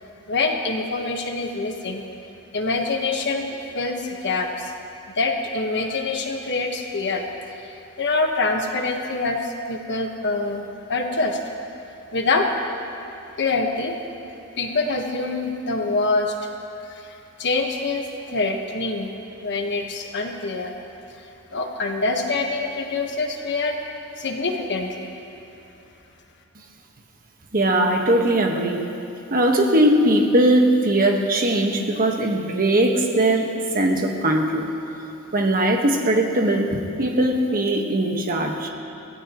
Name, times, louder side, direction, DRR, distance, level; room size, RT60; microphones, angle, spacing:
voice 1, 0.3-2.0 2.5-4.7 5.1-7.2 7.6-11.4 12.1-12.5 13.4-13.9 14.6-16.3 16.9-19.1 19.4-20.7 21.2-21.3 21.5-23.8 24.2-25.1, left 3 dB, 55° left, 3 dB, 1.4 m, -25 dB
voice 2, 27.5-28.8 29.3-33.5 33.7-34.7 35.3-38.7, right 1 dB, 40° right, 2 dB, 1.5 m, -20 dB
23.5 x 17.0 x 3.1 m, 2.9 s
head